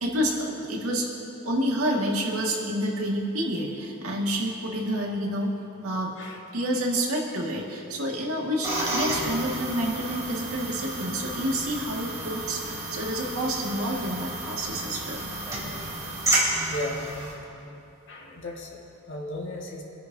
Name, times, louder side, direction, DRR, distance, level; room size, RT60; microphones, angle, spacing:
voice 1, 0.0-1.1 1.5-5.5 5.8-6.1 6.5-12.6 12.9-15.3, equal, 80° right, -2 dB, 2.0 m, -28 dB
sound 1, 8.6-17.3, right 1 dB, 15° right, 3.5 m, -31 dB
voice 2, 16.4-17.2 18.1-18.8 19.1-19.8, left 1 dB, 60° left, -1 dB, 1.8 m, -36 dB
26.0 x 10.0 x 2.7 m, 2.9 s
head